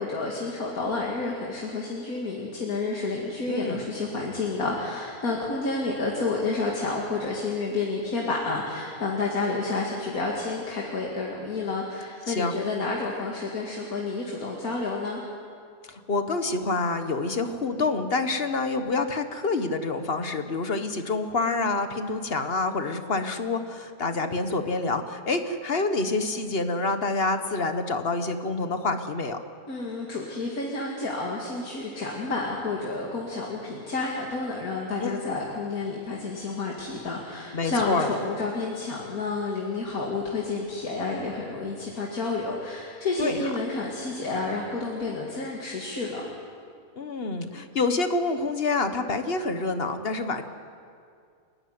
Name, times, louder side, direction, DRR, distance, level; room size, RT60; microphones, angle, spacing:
voice 1, 0.0-15.2 29.7-46.2, left 3 dB, 75° left, -2 dB, 2.7 m, -30 dB
voice 2, 3.5-3.9 12.3-12.5 15.9-29.4 35.0-35.1 37.5-38.1 43.2-43.4 47.0-50.4, left 3 dB, 45° left, 8 dB, 1.5 m, -27 dB
28.5 x 12.0 x 9.5 m, 2.3 s
omnidirectional pair, 1.5 m